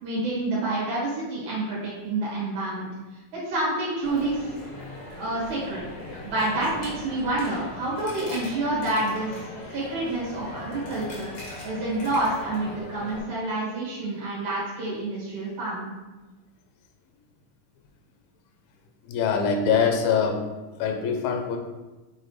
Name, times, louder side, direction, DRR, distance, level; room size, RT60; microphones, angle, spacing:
voice 1, 0.0-2.9 3.3-4.5 5.2-5.8 6.2-11.3 11.6-15.9, right 2 dB, 60° right, -6 dB, 3.2 m, -28 dB
Coin (dropping), 4.0-13.2, left 1 dB, 65° left, 0.9 m, -39 dB
voice 2, 19.1-20.5 20.8-21.6, left 6 dB, 85° left, 4 dB, 2.5 m, -23 dB
7.4 x 3.9 x 3.2 m, 1.1 s
omnidirectional pair, 4.1 m